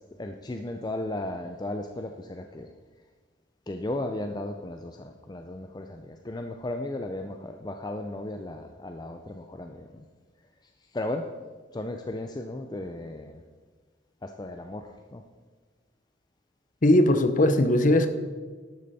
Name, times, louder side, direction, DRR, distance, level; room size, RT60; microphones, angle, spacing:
voice 1, 0.0-2.7 3.7-10.1 10.6-11.3 11.7-13.4 14.2-15.2, left 1 dB, 20° left, 5 dB, 0.4 m, -35 dB
voice 2, 16.8-18.1, left 1 dB, 40° left, 9 dB, 0.8 m, -19 dB
12.0 x 8.6 x 4.2 m, 1.4 s
head